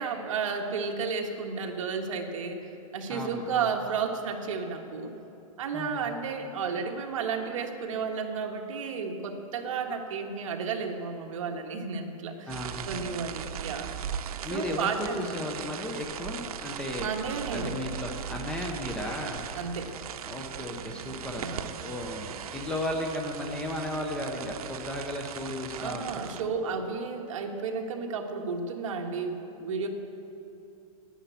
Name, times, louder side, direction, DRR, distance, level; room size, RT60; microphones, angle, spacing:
voice 1, 0.0-5.1 5.6-12.6 12.8-13.9 14.5-15.3 17.0-17.7 19.5-19.9 21.4-21.8 25.8-29.9, right 5 dB, 60° right, 3 dB, 1.5 m, -32 dB
voice 2, 3.1-3.7 5.7-6.2 12.5-13.0 14.4-17.1 17.5-19.4 20.2-26.1, left 1 dB, 5° left, 1 dB, 0.5 m, -35 dB
sound 1, 12.5-26.4, right 8 dB, 85° right, 0.7 m, -39 dB
10.0 x 10.0 x 8.2 m, 2.8 s
supercardioid pair, 175°, 18 cm